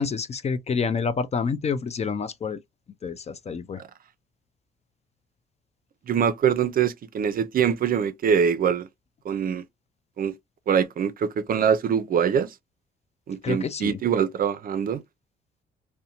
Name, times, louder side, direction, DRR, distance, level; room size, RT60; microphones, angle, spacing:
voice 1, 0.0-2.6 3.0-3.8 13.4-14.0, left 5 dB, 35° left, 0.4 m, -28 dB
voice 2, 6.1-8.9 9.2-9.6 10.2-10.3 10.7-12.5 13.3-15.0, right 7 dB, 45° right, 0.4 m, -23 dB
2.6 x 2.1 x 2.8 m
cardioid pair, 90°, 20 cm